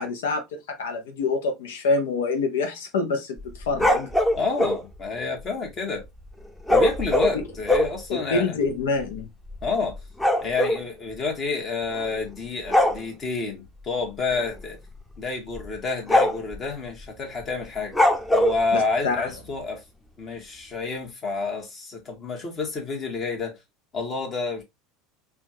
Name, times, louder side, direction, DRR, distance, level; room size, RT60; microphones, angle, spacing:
voice 1, 0.0-4.1 7.3-7.4 8.1-9.3 18.7-19.3, left 4 dB, 75° left, 0.8 m, -26 dB
sound 1, 3.4-4.8 6.7-8.0 8.7-8.8 9.0-9.2 9.5-10.8 11.9-12.3 12.6-13.0 14.3-14.6 15.0-15.1 15.6-15.7 16.1-16.6 17.9-18.6, left 1 dB, 10° left, 0.9 m, -21 dB
voice 2, 4.3-6.1 6.7-8.6 9.6-10.0 10.4-14.8 15.2-18.0 18.3-19.8 20.2-23.6 23.9-24.6, left 4 dB, 35° left, 1.6 m, -29 dB
4.3 x 2.5 x 2.8 m
hypercardioid pair, 80°, 0 cm